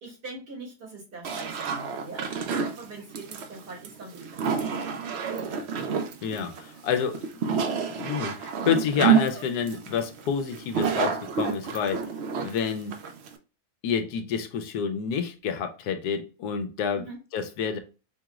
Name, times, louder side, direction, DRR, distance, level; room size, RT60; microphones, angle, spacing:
voice 1, 0.0-5.2 16.9-17.2, right 2 dB, 85° right, 2.5 m, -42 dB
sound 1, 1.2-13.4, right 6 dB, 70° right, 0.6 m, -28 dB
voice 2, 6.2-7.3 7.5-12.0 12.4-13.0 13.8-17.0 17.3-17.8, left 7 dB, 80° left, 1.1 m, -29 dB
4.7 x 2.9 x 2.3 m
omnidirectional pair, 1.7 m